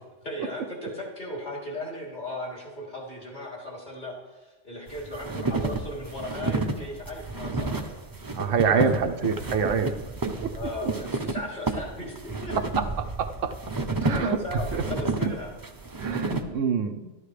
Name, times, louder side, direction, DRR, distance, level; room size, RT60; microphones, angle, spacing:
voice 1, 0.2-7.9 8.6-9.1 10.5-12.6 14.0-15.5, left 1 dB, 35° left, -4 dB, 3.5 m, -36 dB
sound 1, 4.9-16.4, right 3 dB, 20° right, 0.6 m, -31 dB
voice 2, 8.4-9.9 10.2-10.5 12.8-13.5 14.0-14.4 14.7-14.8 16.0-17.1, right 6 dB, 80° right, 7 dB, 1.1 m, -26 dB
12.5 x 12.5 x 3.3 m, 1.2 s
omnidirectional pair, 1.3 m